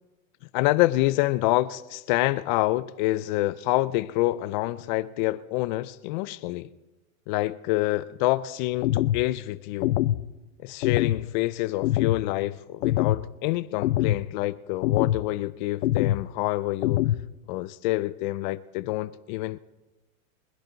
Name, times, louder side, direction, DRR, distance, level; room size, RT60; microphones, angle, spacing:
voice 1, 0.5-6.7 7.3-10.0 10.6-17.0 17.5-19.6, left 18 dB, 35° left, 0.4 m, -27 dB
sound 1, 8.8-9.2 9.8-10.2 10.8-11.2 11.8-12.2 12.8-13.2 13.8-14.2 14.8-15.2 15.8-16.2 16.8-17.2, left 14 dB, 75° left, 0.7 m, -24 dB
24.0 x 11.0 x 3.9 m
hypercardioid pair, 130°, 42 cm